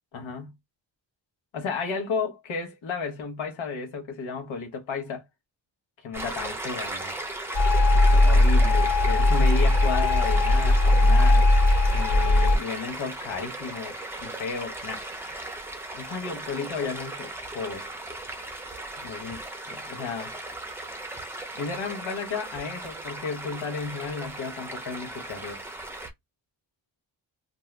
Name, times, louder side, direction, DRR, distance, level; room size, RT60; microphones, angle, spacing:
voice 1, 0.1-0.5 1.5-5.2 6.0-7.1 7.8-11.5 11.9-13.9 14.2-15.0 15.9-17.9 19.0-20.3 21.5-25.6, left 5 dB, 90° left, 1.1 m, -33 dB
Stream, 6.1-26.1, right 2 dB, 5° right, 0.4 m, -37 dB
sound 1, 7.5-12.6, left 1 dB, 70° left, 1.5 m, -19 dB
2.6 x 2.3 x 3.2 m
wide cardioid pair, 160°, 45 cm